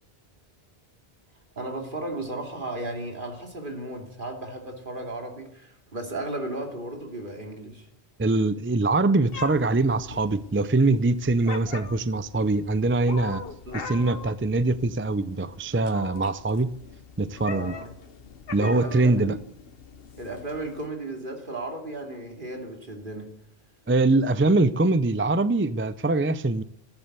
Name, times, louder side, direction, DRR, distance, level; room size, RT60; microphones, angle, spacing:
voice 1, 1.6-7.9 13.7-13.9 17.5-17.9 18.6-19.4 20.1-23.3, right 2 dB, 50° right, 3.1 m, -35 dB
voice 2, 8.2-13.4 13.7-16.7 17.2-17.7 18.5-19.4 23.9-26.6, right 2 dB, 20° right, 0.4 m, -23 dB
Meow, 9.3-20.9, left 5 dB, 65° left, 1.3 m, -42 dB
15.0 x 10.5 x 8.1 m
omnidirectional pair, 1.1 m